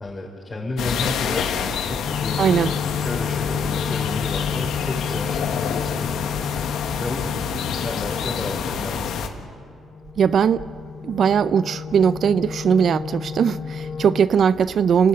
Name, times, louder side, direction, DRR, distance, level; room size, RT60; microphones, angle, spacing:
voice 1, 0.0-2.5 3.0-6.2 7.0-9.3, left 2 dB, 25° left, -5 dB, 5.3 m, -31 dB
sound 1, 0.8-9.3, left 7 dB, 80° left, 1.7 m, -27 dB
sound 2, 2.1-9.2 9.5-14.2, left 6 dB, 45° left, 0.6 m, -31 dB
voice 2, 2.4-2.7 10.2-10.6 11.0-15.1, right 7 dB, 60° right, 14 dB, 0.6 m, -19 dB
29.5 x 15.0 x 9.2 m, 2.4 s
cardioid pair, 90°, 0 cm